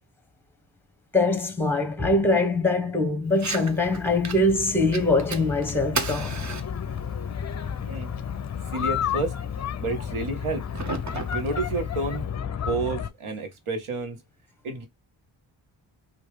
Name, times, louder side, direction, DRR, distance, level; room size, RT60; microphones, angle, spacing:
voice 1, 1.1-6.4, left 2 dB, 5° left, 1.0 m, -23 dB
Fire, 3.3-12.3, right 4 dB, 35° right, 0.9 m, -37 dB
sound 1, 3.4-13.1, left 8 dB, 35° left, 0.5 m, -32 dB
voice 2, 8.7-9.3 9.8-10.7 11.3-12.2 12.6-14.2 14.6-14.9, right 3 dB, 80° right, 1.5 m, -30 dB
3.0 x 2.9 x 3.2 m
cardioid pair, 60°, 49 cm